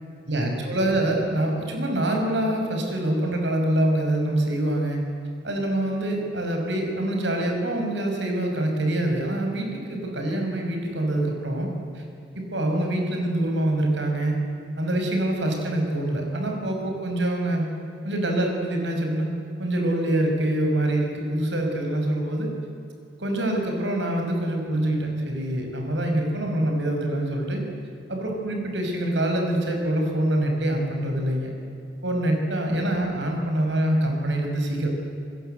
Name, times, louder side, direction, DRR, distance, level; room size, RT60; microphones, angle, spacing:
voice 1, 0.3-5.0 5.4-11.7 11.9-12.0 12.3-14.4 14.8-17.7 18.0-19.3 19.6-22.5 23.2-27.6 28.1-31.5 32.0-34.9, right 1 dB, 65° right, 2 dB, 6.3 m, -25 dB
30.0 x 22.0 x 8.2 m, 2.7 s
head